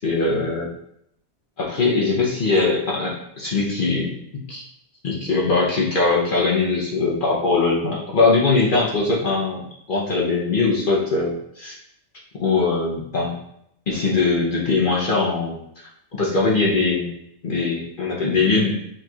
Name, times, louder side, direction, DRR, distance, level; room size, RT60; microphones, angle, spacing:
voice 1, 0.0-0.7 1.6-4.1 4.5-4.6 5.0-9.6 9.9-11.7 12.4-13.4 13.9-15.6 16.1-17.1 17.4-18.8, left 3 dB, 55° left, -4 dB, 0.9 m, -21 dB
7.5 x 3.0 x 2.3 m, 0.75 s
omnidirectional pair, 1.1 m